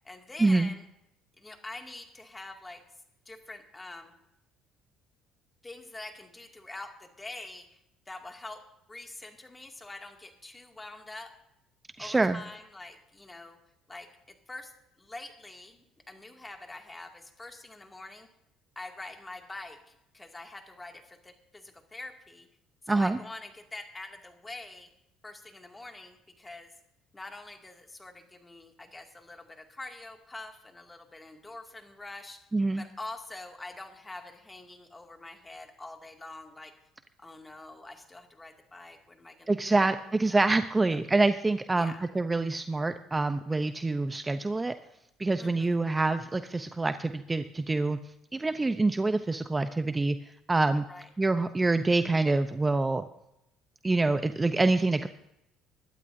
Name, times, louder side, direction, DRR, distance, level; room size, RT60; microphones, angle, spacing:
voice 1, 0.0-0.9 1.4-2.8 3.3-4.1 5.6-7.8 8.1-8.6 8.9-11.3 12.0-13.6 13.9-14.7 15.0-18.3 18.8-22.5 22.8-24.9 25.2-26.7 27.1-32.5 32.8-36.7 37.2-39.9 40.2-40.4 40.9-41.0 41.8-42.0 45.4-45.8 50.9-51.1, left 2 dB, 15° left, 3 dB, 2.3 m, -45 dB
voice 2, 12.0-12.4 22.9-23.2 32.5-32.8 39.5-44.7 45.2-48.0 48.3-50.2 50.5-50.8 51.2-53.0 53.8-55.1, right 3 dB, 20° right, 10 dB, 0.6 m, -26 dB
22.5 x 12.0 x 2.7 m, 0.83 s
supercardioid pair, 80°, 0 cm